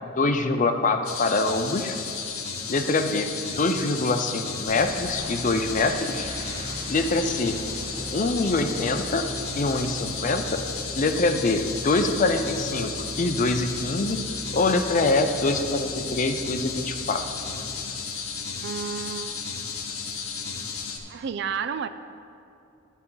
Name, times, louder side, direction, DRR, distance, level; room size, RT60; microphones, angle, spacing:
voice 1, 0.0-2.0 2.7-6.3 6.9-7.6 8.1-9.3 9.5-10.6 11.0-14.2 14.5-17.2, left 3 dB, 35° left, 8 dB, 0.5 m, -24 dB
sound 1, 1.0-21.0, left 5 dB, 85° left, 1.0 m, -34 dB
sound 2, 4.7-18.0, right 1 dB, 25° right, 0.7 m, -39 dB
voice 2, 18.6-19.4 21.1-21.9, right 6 dB, 50° right, 12 dB, 0.3 m, -31 dB
9.8 x 9.0 x 3.9 m, 2.7 s
head